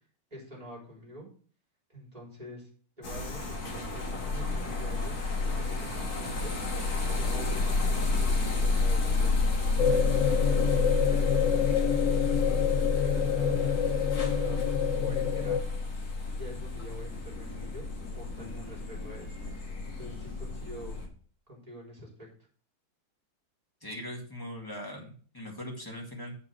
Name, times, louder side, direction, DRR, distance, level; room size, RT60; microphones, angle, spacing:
voice 1, 0.3-1.3 1.9-2.7 3.0-6.6 6.8-9.4 10.1-11.6 12.0-13.6 14.2-15.6 16.3-17.9 18.1-19.4 19.8-21.0 21.5-22.3, equal, 15° right, -3 dB, 3.8 m, -46 dB
sound 1, 3.0-21.1, left 3 dB, 45° left, 2.3 m, -30 dB
sound 2, 9.8-15.6, left 8 dB, 80° left, 0.6 m, -28 dB
voice 2, 23.8-26.3, equal, 10° left, -1 dB, 1.8 m, -40 dB
7.8 x 5.6 x 6.2 m, 0.44 s
omnidirectional pair, 2.3 m